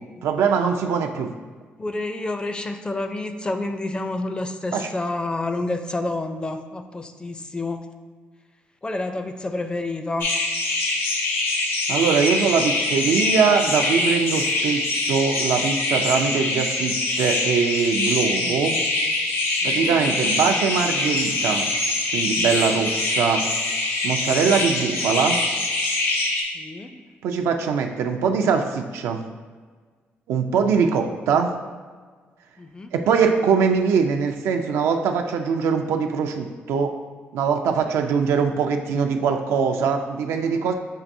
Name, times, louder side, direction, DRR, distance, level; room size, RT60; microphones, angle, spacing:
voice 1, 0.2-1.3 4.7-4.9 11.9-18.8 19.6-21.7 22.1-23.4 24.0-25.4 27.2-29.2 30.3-31.5 32.9-36.9 37.3-40.7, right 6 dB, 85° right, 4 dB, 0.4 m, -22 dB
voice 2, 1.8-7.8 8.8-10.3 19.6-20.0 22.4-22.6 26.5-26.9 32.6-32.9, left 2 dB, 20° left, 7 dB, 0.4 m, -29 dB
sound 1, 10.2-26.4, left 2 dB, 70° left, 0.9 m, -24 dB
7.1 x 2.6 x 2.6 m, 1.5 s
cardioid pair, 80°, 4 cm